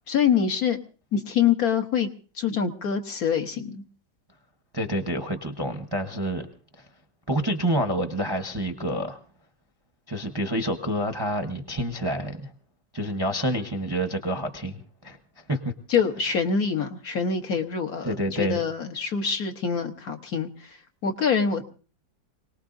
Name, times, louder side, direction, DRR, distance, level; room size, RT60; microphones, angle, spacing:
voice 1, 0.1-0.8 1.1-2.1 2.4-3.8 15.9-20.5 21.0-21.6, left 7 dB, 55° left, 4 dB, 1.5 m, -25 dB
voice 2, 4.7-6.5 6.8-6.9 7.3-9.2 10.1-12.5 12.9-15.2 15.5-15.7 18.0-18.6, equal, 15° right, 5 dB, 0.8 m, -28 dB
26.5 x 19.0 x 2.6 m, 0.37 s
omnidirectional pair, 2.0 m